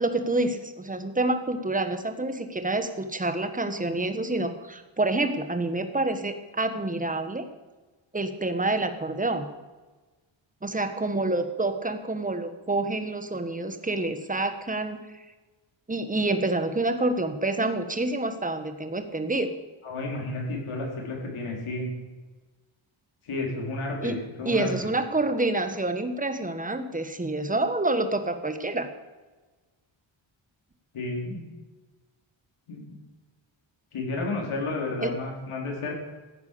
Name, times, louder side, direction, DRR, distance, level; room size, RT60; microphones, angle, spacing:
voice 1, 0.0-7.4 8.1-9.5 10.6-15.0 15.9-19.5 24.0-24.1 24.4-28.9 35.0-35.1, right 2 dB, 15° right, 8 dB, 1.4 m, -27 dB
voice 2, 19.8-21.9 23.2-24.7 30.9-31.4 32.7-32.8 33.9-35.9, left 2 dB, 90° left, -1 dB, 4.7 m, -31 dB
15.5 x 9.5 x 6.9 m, 1.2 s
wide cardioid pair, 135°, 49 cm